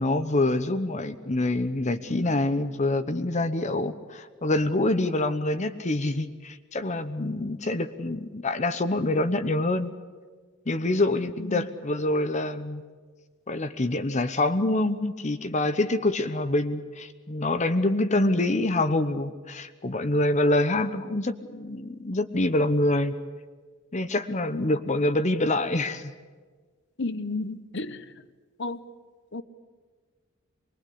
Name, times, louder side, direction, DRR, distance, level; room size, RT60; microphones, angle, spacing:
voice 1, 0.0-9.9 10.7-12.8 13.5-23.1 23.9-26.1, left 2 dB, 35° left, 1.0 m, -26 dB
voice 2, 27.0-28.1 28.6-28.8 29.3-29.4, left 3 dB, 60° left, 1.1 m, -32 dB
24.5 x 21.5 x 8.5 m
head